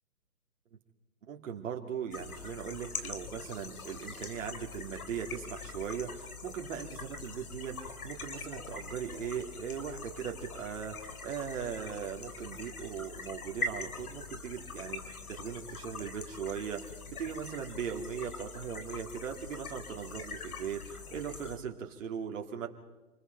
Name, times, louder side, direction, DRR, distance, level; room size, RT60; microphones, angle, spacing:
voice 1, 1.3-22.7, right 7 dB, 55° right, 2 dB, 2.7 m, -39 dB
sound 1, 2.1-21.6, left 4 dB, 75° left, 3.4 m, -43 dB
27.0 x 21.0 x 4.6 m, 1.2 s
hypercardioid pair, 150°, 44 cm